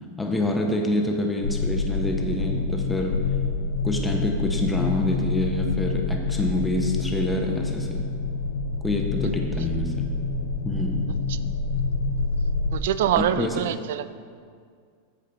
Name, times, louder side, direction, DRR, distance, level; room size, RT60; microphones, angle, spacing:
voice 1, 0.2-3.2 3.8-8.0 8.8-10.1 10.6-11.1 13.2-13.6, left 1 dB, 5° left, 1 dB, 0.9 m, -27 dB
sound 1, 1.4-12.8, left 3 dB, 75° left, 0.7 m, -27 dB
voice 2, 12.7-14.1, right 10 dB, 60° right, 14 dB, 0.3 m, -24 dB
14.0 x 5.0 x 3.5 m, 2.2 s
figure-of-eight pair, 90°, 0 cm